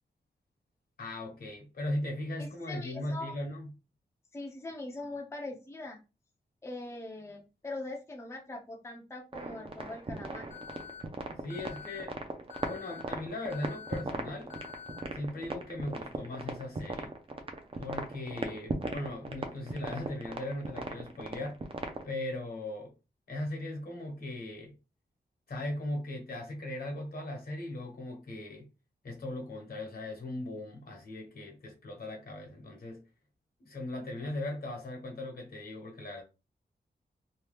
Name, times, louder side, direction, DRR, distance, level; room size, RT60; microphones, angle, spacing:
voice 1, 1.0-3.7 11.4-12.2 12.7-14.6 15.1-17.1 17.8-21.6 22.0-22.9 23.3-24.8 25.5-28.7 29.0-33.0 33.6-36.2, left 1 dB, 60° left, 1.0 m, -38 dB
voice 2, 2.4-3.3 4.3-6.0 6.6-10.5, left 2 dB, 15° left, 0.5 m, -42 dB
sound 1, 9.3-22.1, right 3 dB, 30° right, 0.5 m, -38 dB
Alarm, 10.5-11.0 11.5-12.0 12.5-13.0 13.5-14.0 14.5-15.0, left 8 dB, 40° left, 0.8 m, -47 dB
2.8 x 2.3 x 3.3 m
wide cardioid pair, 155°, 17 cm